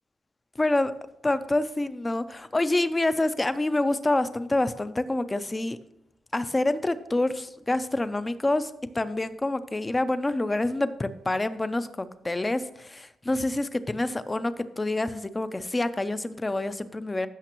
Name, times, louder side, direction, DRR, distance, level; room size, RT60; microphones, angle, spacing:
voice 1, 0.6-0.9 1.2-5.8 6.3-17.3, left 2 dB, 20° left, 12 dB, 0.5 m, -27 dB
15.0 x 5.9 x 3.0 m, 0.80 s
cardioid pair, 85°, 0 cm